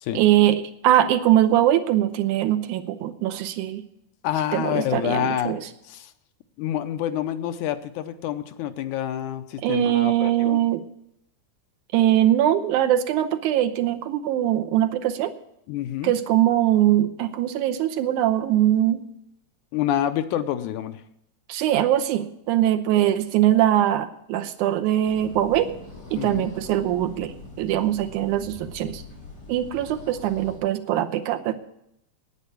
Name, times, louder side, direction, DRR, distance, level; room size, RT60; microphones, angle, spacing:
voice 1, 0.2-3.8 4.5-5.6 9.6-10.8 11.9-15.3 16.0-19.1 21.5-25.7 26.1-29.0 29.5-31.5, right 12 dB, 85° right, 9 dB, 2.2 m, -22 dB
voice 2, 4.2-5.5 5.8-6.1 6.6-10.6 15.7-16.1 19.7-21.0 26.2-26.5, left 11 dB, 80° left, 9 dB, 2.2 m, -27 dB
sound 1, 25.0-30.6, left 2 dB, 45° left, 6.2 m, -42 dB
9.9 x 9.3 x 8.3 m, 0.78 s
omnidirectional pair, 3.5 m